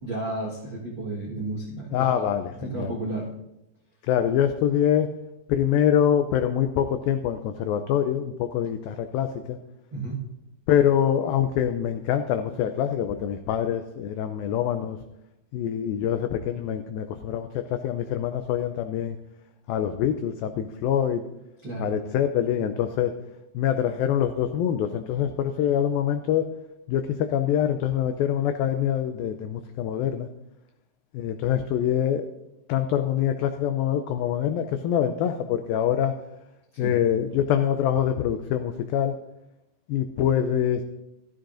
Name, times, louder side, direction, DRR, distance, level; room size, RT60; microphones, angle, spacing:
voice 1, 0.0-3.2 9.9-10.2 21.6-21.9 36.7-36.9, right 2 dB, 65° right, -5 dB, 1.1 m, -33 dB
voice 2, 1.9-2.9 4.0-5.1 5.5-9.6 10.7-15.0 15.5-19.2 19.7-21.2 21.8-23.1 23.5-26.5 26.9-30.3 31.1-32.3 32.7-36.2 36.8-39.2 39.9-40.8, left 9 dB, 85° left, 8 dB, 2.0 m, -25 dB
15.0 x 13.0 x 2.6 m, 0.90 s
omnidirectional pair, 4.8 m